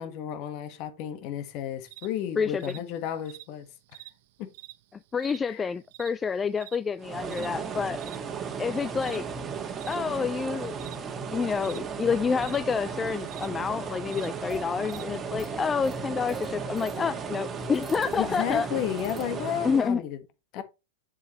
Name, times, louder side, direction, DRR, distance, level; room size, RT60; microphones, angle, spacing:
voice 1, 0.0-3.7 4.4-4.5 5.4-5.6 18.2-20.2 20.5-20.6, left 10 dB, 45° left, 1.4 m, -32 dB
sound 1, 1.9-15.6, right 17 dB, 55° right, 0.9 m, -49 dB
voice 2, 2.4-2.7 5.1-8.0 8.6-9.2 9.9-10.8 11.3-18.7 19.6-20.0 20.6-20.7, left 6 dB, 20° left, 0.4 m, -28 dB
sound 2, 7.0-19.9, right 6 dB, 25° right, 1.6 m, -35 dB
sound 3, 14.5-18.3 18.8-19.3, right 2 dB, ahead, 2.0 m, -44 dB
7.9 x 7.1 x 3.1 m
hypercardioid pair, 105°, 0 cm